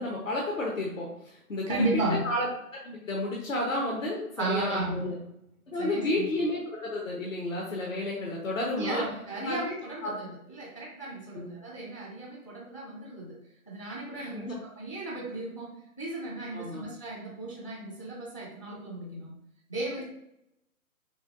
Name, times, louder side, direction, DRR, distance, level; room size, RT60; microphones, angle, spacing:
voice 1, 0.0-1.8 2.2-2.5 2.8-5.1 5.7-9.0 9.4-9.6 10.0-10.1 11.3-11.5 14.2-14.5 16.5-16.8, left 2 dB, 60° left, -3 dB, 1.1 m, -31 dB
voice 2, 1.7-2.3 4.4-5.1 5.8-6.3 8.8-13.4 13.7-19.3 19.7-20.0, right 2 dB, 25° left, -3 dB, 0.4 m, -34 dB
5.8 x 2.3 x 2.5 m, 0.79 s
figure-of-eight pair, 145°, 45 cm